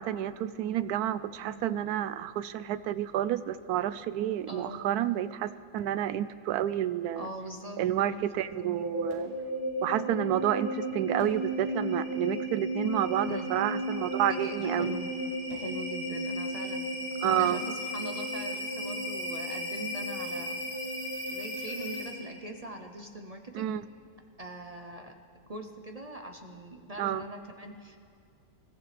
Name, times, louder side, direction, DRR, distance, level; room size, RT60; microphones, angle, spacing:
voice 1, 0.0-7.3 7.8-9.3 9.8-14.9 17.2-17.6 23.5-23.9 27.0-27.2, right 11 dB, 85° right, 15 dB, 1.1 m, -30 dB
voice 2, 4.5-4.8 7.1-8.3 13.3-13.5 14.3-15.1 15.5-20.7 21.3-23.7 24.4-25.1 25.5-28.0, right 1 dB, 35° right, 3 dB, 0.7 m, -42 dB
sound 1, 8.4-22.4, equal, 15° left, 4.1 m, -34 dB
27.5 x 14.5 x 3.4 m, 2.3 s
omnidirectional pair, 1.6 m